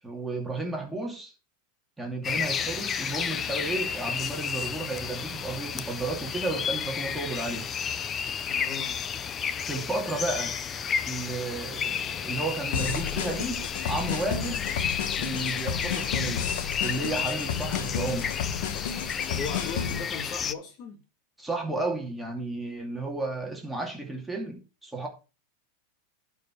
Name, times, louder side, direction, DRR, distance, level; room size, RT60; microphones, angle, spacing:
voice 1, 0.0-1.3 2.0-7.7 9.7-10.6 11.0-14.6 15.2-16.5 16.8-18.4 21.4-25.1, right 2 dB, 5° right, 2.4 m, -33 dB
sound 1, 2.2-20.5, left 7 dB, 25° left, 0.6 m, -32 dB
voice 2, 8.5-9.1 19.3-21.0, left 4 dB, 40° left, 2.1 m, -37 dB
sound 2, 12.7-20.0, left 8 dB, 75° left, 1.5 m, -32 dB
11.5 x 4.7 x 4.7 m
supercardioid pair, 135°, 0 cm